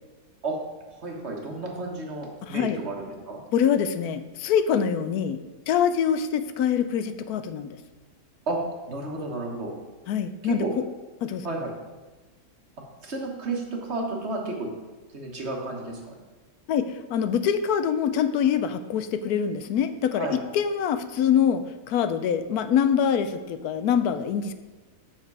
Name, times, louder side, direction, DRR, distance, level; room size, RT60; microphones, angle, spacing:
voice 1, 0.9-3.4 8.5-8.6 8.9-9.7 10.4-10.7 11.4-11.7 13.0-14.7 15.1-16.1 20.1-20.4, right 2 dB, 45° right, 0 dB, 1.5 m, -32 dB
voice 2, 2.4-2.8 3.5-5.4 5.7-7.8 10.1-10.6 11.2-11.5 16.7-24.5, left 8 dB, 85° left, 11 dB, 1.1 m, -24 dB
7.5 x 6.5 x 4.7 m, 1.2 s
omnidirectional pair, 1.6 m